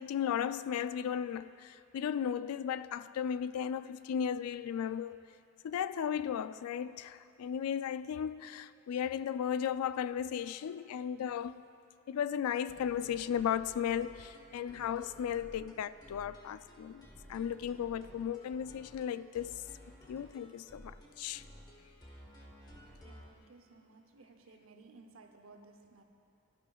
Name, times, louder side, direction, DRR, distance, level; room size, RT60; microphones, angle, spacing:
voice 1, 0.0-5.2 5.6-11.6 12.1-19.5 20.1-21.4, left 8 dB, 90° left, 0.3 m, -35 dB
sound 1, 12.7-23.3, equal, 20° left, 1.1 m, -55 dB
voice 2, 23.0-26.0, right 3 dB, 70° right, 0.7 m, -58 dB
17.0 x 12.0 x 2.4 m
head